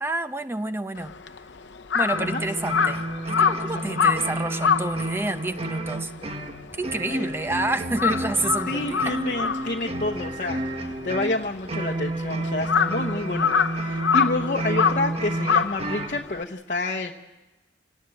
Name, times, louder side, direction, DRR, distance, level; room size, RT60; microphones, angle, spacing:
voice 1, 0.0-1.1 1.9-6.1 6.7-9.5, right 2 dB, 15° right, 0.8 m, -29 dB
Crow, 1.0-7.5 7.8-16.4, left 6 dB, 80° left, 0.8 m, -26 dB
sound 1, 2.1-16.2, right 2 dB, 35° right, 1.3 m, -31 dB
voice 2, 3.7-4.1 7.1-7.3 8.7-17.1, left 2 dB, 50° left, 1.0 m, -29 dB
28.0 x 18.0 x 7.8 m
head